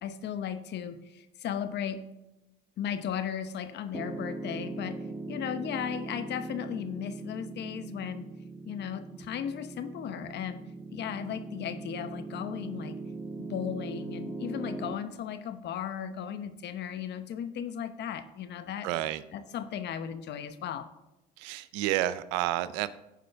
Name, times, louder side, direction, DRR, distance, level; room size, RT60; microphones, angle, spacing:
voice 1, 0.0-2.0 2.8-8.3 8.7-13.0 13.4-18.9 19.3-20.9, left 8 dB, 55° left, 11 dB, 0.9 m, -36 dB
Piano, 3.9-14.9, right 3 dB, ahead, 0.9 m, -40 dB
voice 2, 18.8-19.2 21.4-22.9, right 14 dB, 90° right, 15 dB, 0.5 m, -30 dB
15.0 x 5.1 x 3.4 m, 0.98 s
supercardioid pair, 85°, 21 cm